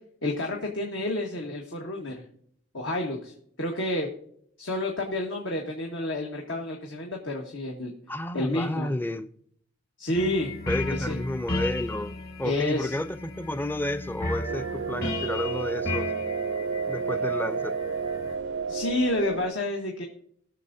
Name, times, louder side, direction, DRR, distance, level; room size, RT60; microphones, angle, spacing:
voice 1, 0.2-2.2 2.7-4.1 4.6-7.9 8.3-8.9 10.0-10.5 10.9-11.2 12.4-12.9 18.7-20.0, left 1 dB, 75° left, 1.5 m, -29 dB
voice 2, 8.1-9.3 10.7-16.1 16.9-17.8, left 1 dB, 10° left, 0.5 m, -31 dB
sound 1, 10.1-18.3, left 2 dB, 55° left, 2.6 m, -35 dB
sound 2, 14.5-19.5, right 5 dB, 70° right, 0.5 m, -31 dB
20.5 x 7.0 x 2.7 m
head